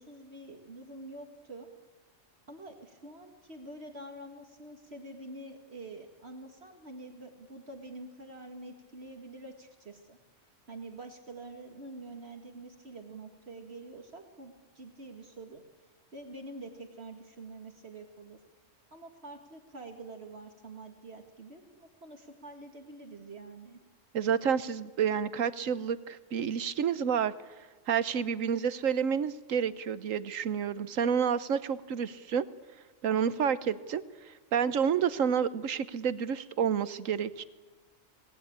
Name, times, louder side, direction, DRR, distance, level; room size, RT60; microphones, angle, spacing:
voice 1, 0.0-1.7 2.5-10.2 10.7-15.6 16.1-18.4 18.9-23.8, right 2 dB, 55° right, 4 dB, 2.3 m, -46 dB
voice 2, 24.1-27.3 27.9-32.5 33.0-37.4, right 7 dB, 90° right, 14 dB, 1.4 m, -29 dB
27.0 x 19.0 x 8.9 m, 1.3 s
omnidirectional pair, 1.3 m